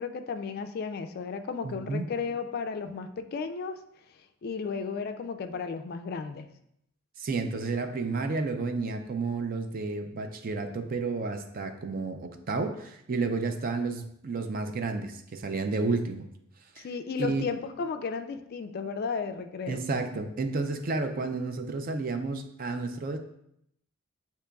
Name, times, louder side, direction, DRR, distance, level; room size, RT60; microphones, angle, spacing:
voice 1, 0.0-3.8 4.4-6.5 16.8-19.8, left 5 dB, 45° left, 8 dB, 0.3 m, -34 dB
voice 2, 1.6-2.1 7.2-16.3 16.8-16.9 17.2-17.4 19.7-23.2, right 3 dB, 40° right, 6 dB, 0.4 m, -31 dB
8.1 x 2.9 x 2.3 m, 0.76 s
head